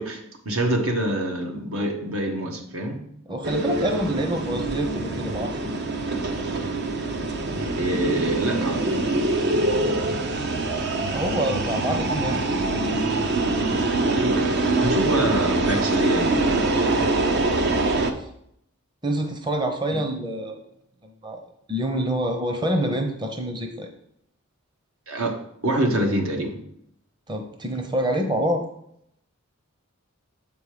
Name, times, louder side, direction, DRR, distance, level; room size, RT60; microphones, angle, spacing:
voice 1, 0.0-3.0 7.6-9.0 14.1-16.7 19.9-20.0 25.1-25.4 25.6-26.6, right 1 dB, 75° right, 3 dB, 1.4 m, -26 dB
voice 2, 3.3-5.8 11.1-12.6 17.7-18.3 19.0-20.6 21.0-21.4 21.7-23.9 27.3-28.6, right 1 dB, 20° right, 4 dB, 0.8 m, -27 dB
sound 1, 3.4-18.1, right 2 dB, 55° right, 0.8 m, -24 dB
7.6 x 5.3 x 5.0 m, 0.73 s
head